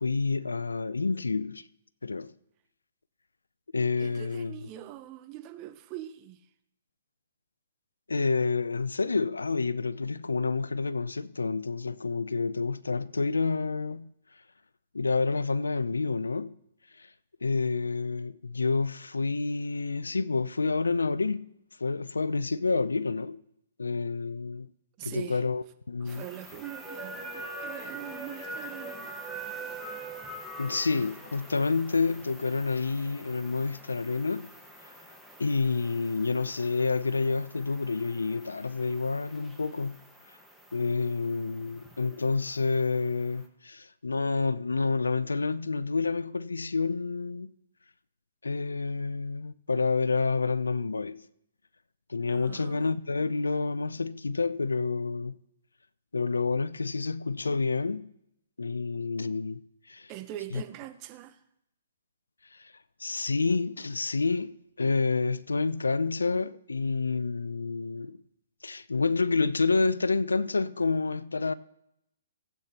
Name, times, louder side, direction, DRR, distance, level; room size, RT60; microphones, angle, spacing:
voice 1, 0.0-1.7 2.0-2.3 3.7-4.6 8.1-14.1 14.9-16.6 16.9-17.1 17.4-21.5 21.8-23.4 23.8-24.7 25.0-26.3 30.6-34.5 34.8-34.9 35.4-40.0 40.7-47.5 48.4-51.3 52.1-55.4 56.1-58.1 58.6-59.6 59.9-60.1 60.5-60.6 62.5-62.7 63.0-68.2 68.6-71.5, left 4 dB, 90° left, 0.5 m, -29 dB
voice 2, 4.0-6.4 25.0-25.4 26.0-29.1 52.3-52.8 60.1-61.4, right 13 dB, 30° right, 0.9 m, -42 dB
sound 1, 26.1-43.4, right 2 dB, ahead, 1.4 m, -44 dB
18.0 x 8.2 x 2.9 m
hypercardioid pair, 130°, 0 cm